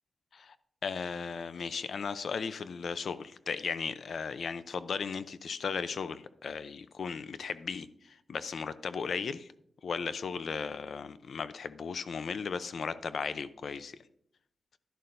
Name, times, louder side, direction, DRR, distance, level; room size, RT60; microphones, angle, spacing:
voice 1, 0.8-9.5 9.8-14.0, left 5 dB, 70° left, 14 dB, 0.6 m, -36 dB
11.5 x 11.0 x 2.6 m, 0.70 s
cardioid pair, 80°, 0 cm